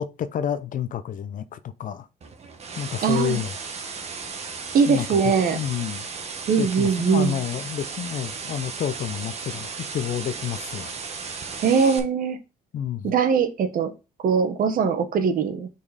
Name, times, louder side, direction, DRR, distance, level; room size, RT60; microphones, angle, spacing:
voice 1, 0.0-2.1 2.8-3.5 4.9-5.2 5.5-6.1 6.6-11.0 12.7-13.1, left 9 dB, 50° left, 0.7 m, -29 dB
sound 1, 2.2-12.0, right 5 dB, 40° right, 1.5 m, -35 dB
voice 2, 3.0-3.4 4.7-5.6 6.5-7.4 11.6-12.4 13.0-13.9 14.2-15.7, right 6 dB, 55° right, 1.2 m, -21 dB
5.5 x 4.3 x 4.9 m
cardioid pair, 110°, 17 cm